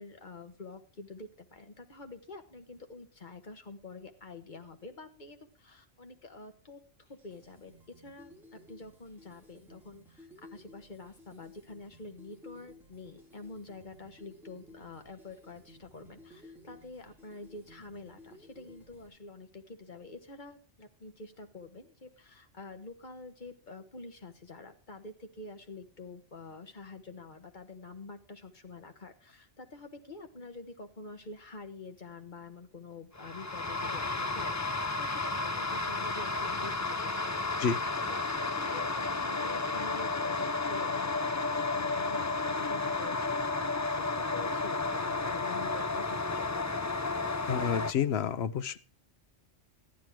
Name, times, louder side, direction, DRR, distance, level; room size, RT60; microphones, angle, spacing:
voice 1, 0.0-6.8 7.2-37.6 38.1-46.7, left 3 dB, 40° left, 6 dB, 1.4 m, -47 dB
sound 1, 7.1-19.1, left 1 dB, ahead, 4.1 m, -56 dB
sound 2, 33.2-47.9, left 3 dB, 25° left, 0.4 m, -32 dB
voice 2, 47.5-48.8, left 7 dB, 65° left, 12 dB, 1.0 m, -29 dB
13.5 x 10.0 x 4.6 m, 0.38 s
omnidirectional pair, 1.2 m